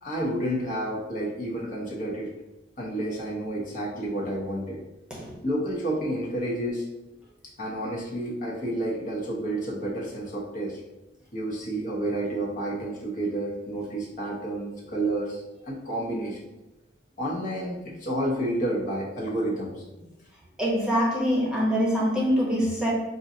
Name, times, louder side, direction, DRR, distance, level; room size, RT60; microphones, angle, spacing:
voice 1, 0.0-2.3 2.8-4.8 5.4-6.8 7.6-10.8 11.3-16.4 17.2-19.9, right 1 dB, 45° left, -5 dB, 1.0 m, -30 dB
voice 2, 20.6-22.9, equal, 5° right, -6 dB, 0.9 m, -24 dB
5.4 x 2.5 x 2.7 m, 1.0 s
head